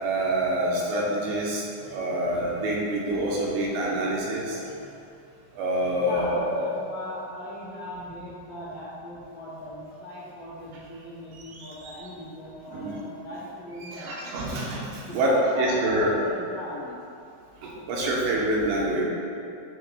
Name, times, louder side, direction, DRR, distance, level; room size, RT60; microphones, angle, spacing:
voice 1, 0.0-4.6 5.6-6.7 11.3-11.9 12.7-13.0 13.8-16.1 17.6-19.0, right 1 dB, 80° right, -4 dB, 3.2 m, -26 dB
voice 2, 6.0-14.4 15.0-17.0, left 1 dB, 65° left, -7 dB, 2.4 m, -38 dB
12.0 x 5.7 x 2.4 m, 2.6 s
omnidirectional pair, 5.1 m